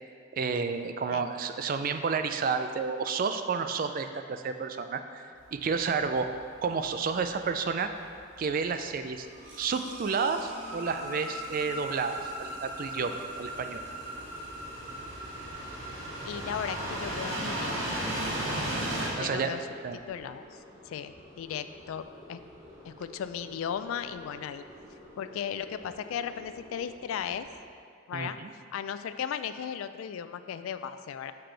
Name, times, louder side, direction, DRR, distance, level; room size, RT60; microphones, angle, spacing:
voice 1, 0.3-5.2 5.5-6.3 6.6-7.9 8.4-9.3 9.6-13.8 19.2-19.5 19.8-20.0 28.1-28.5, right 5 dB, 45° right, 8 dB, 0.3 m, -30 dB
sound 1, 5.4-19.1, right 1 dB, 75° right, 1.1 m, -37 dB
sound 2, 9.1-19.8, right 1 dB, 60° right, 1.2 m, -43 dB
sound 3, 12.0-27.5, equal, 15° right, 1.2 m, -52 dB
voice 2, 16.3-17.9 19.1-19.6 19.9-22.4 22.8-24.6 25.2-27.5 28.1-28.4 28.7-31.3, left 8 dB, 85° left, 12 dB, 0.3 m, -36 dB
6.6 x 5.9 x 3.3 m, 2.2 s
head